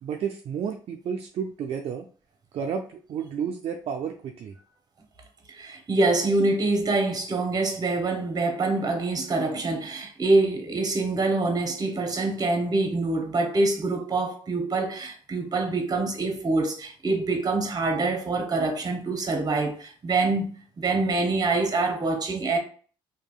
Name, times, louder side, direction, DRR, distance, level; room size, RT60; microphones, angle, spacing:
voice 1, 0.0-2.1 2.5-4.5, right 7 dB, 55° right, 0.4 m, -31 dB
voice 2, 5.5-20.5 20.8-22.6, right 3 dB, 35° right, 0.8 m, -25 dB
2.7 x 2.6 x 2.3 m
supercardioid pair, 70°, 12 cm